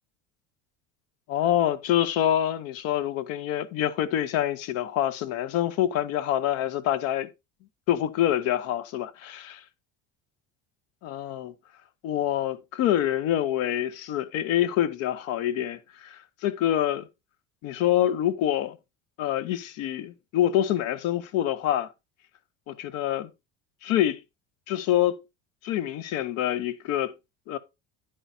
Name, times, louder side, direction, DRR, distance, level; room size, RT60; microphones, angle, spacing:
voice 1, 1.3-7.3 7.9-9.6 11.0-11.5 12.0-17.1 17.6-18.8 19.2-21.9 22.7-23.3 23.8-24.2 24.7-25.2 25.6-27.1 27.5-27.6, left 11 dB, 50° left, 0.8 m, -26 dB
10.5 x 8.7 x 2.7 m
cardioid pair, 175°, 31 cm